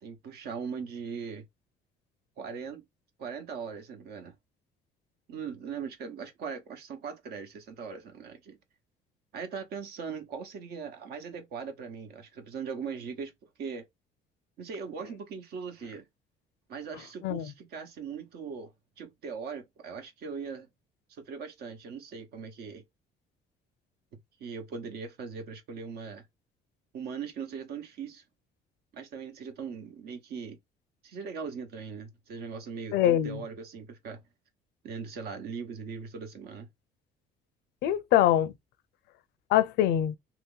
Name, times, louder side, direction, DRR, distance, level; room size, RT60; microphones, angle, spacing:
voice 1, 0.0-1.4 2.4-2.8 3.2-4.3 5.3-8.6 9.3-13.3 13.6-13.9 14.6-16.0 16.7-18.7 19.0-20.7 21.3-22.8 24.4-26.2 26.9-28.2 28.9-30.6 31.0-34.2 34.8-36.7, right 6 dB, 70° right, 1.1 m, -40 dB
voice 2, 32.9-33.4 37.8-38.5 39.5-40.2, left 11 dB, 80° left, 0.5 m, -24 dB
3.0 x 2.9 x 3.8 m
cardioid pair, 110°, 17 cm